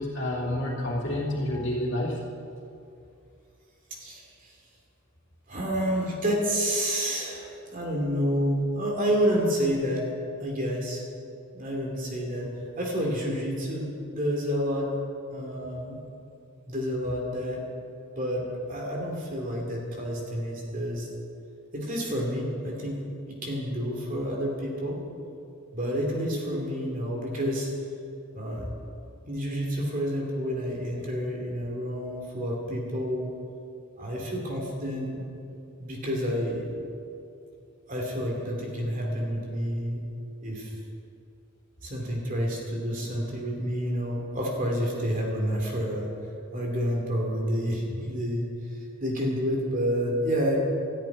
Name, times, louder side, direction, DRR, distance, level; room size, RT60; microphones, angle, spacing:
voice 1, 0.0-2.2, left 1 dB, 55° left, -3 dB, 3.0 m, -29 dB
voice 2, 4.0-4.5 5.5-10.1 10.4-11.0 11.5-12.5 12.8-14.9 15.3-16.0 16.7-17.6 18.1-21.1 21.7-23.0 23.2-25.0 25.7-27.7 28.3-28.7 29.3-33.3 34.0-35.2 35.8-36.7 37.9-40.0 40.4-40.7 41.8-46.1 46.5-50.5, equal, 40° right, -1 dB, 2.8 m, -29 dB
13.5 x 7.5 x 9.9 m, 2.6 s
head